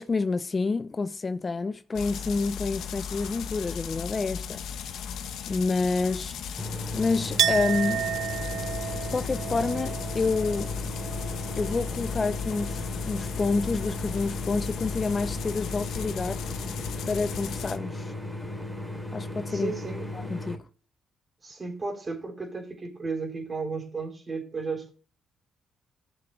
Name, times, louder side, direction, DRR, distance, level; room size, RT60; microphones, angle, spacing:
voice 1, 0.0-5.0 5.5-6.7 6.9-8.1 9.1-10.7 11.6-16.4 17.1-18.1 19.1-19.7 20.1-20.6, left 4 dB, 30° left, 0.5 m, -28 dB
sound 1, 2.0-17.8, left 7 dB, 80° left, 1.0 m, -36 dB
sound 2, 6.6-20.6, left 1 dB, ahead, 3.1 m, -36 dB
Chink clink, 7.4-12.9 13.2-14.1, right 11 dB, 70° right, 0.3 m, -33 dB
voice 2, 19.5-20.1 21.4-24.9, right 4 dB, 30° right, 3.6 m, -34 dB
16.5 x 6.8 x 2.3 m
cardioid pair, 90°, 0 cm